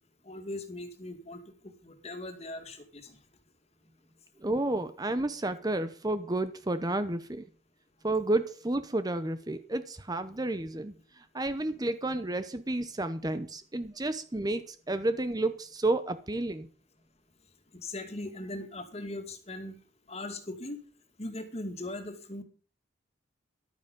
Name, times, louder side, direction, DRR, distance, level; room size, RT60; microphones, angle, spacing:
voice 1, 0.2-3.2 10.7-10.8 11.7-11.8 17.7-19.8 20.1-20.8 21.2-22.4, left 2 dB, 35° left, 7 dB, 2.3 m, -40 dB
voice 2, 4.4-7.4 8.0-16.7, right 2 dB, 20° right, 11 dB, 0.8 m, -31 dB
14.0 x 12.0 x 5.3 m, 0.39 s
head